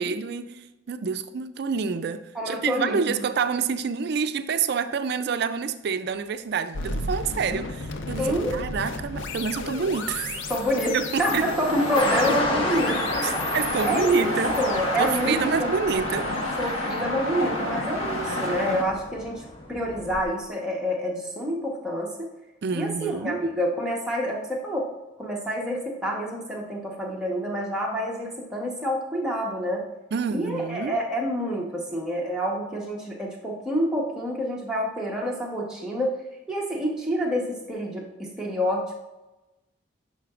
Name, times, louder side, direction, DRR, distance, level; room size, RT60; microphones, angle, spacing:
voice 1, 0.0-10.4 10.9-11.5 13.2-14.5 15.0-16.3 18.3-18.4 22.6-23.4 30.1-31.0, right 5 dB, 55° right, 0.4 m, -28 dB
voice 2, 2.3-3.1 8.2-8.5 10.5-13.4 13.8-14.3 14.6-15.7 16.6-19.4 19.7-22.3 22.7-24.8 25.2-29.8 30.3-36.1 36.5-39.0, equal, 5° right, 1.1 m, -27 dB
sound 1, 6.7-17.8, left 3 dB, 65° left, 0.6 m, -35 dB
sound 2, 11.2-18.8, left 1 dB, 85° left, 1.2 m, -29 dB
sound 3, 11.9-20.2, left 1 dB, 25° left, 0.7 m, -32 dB
9.1 x 5.7 x 2.4 m
head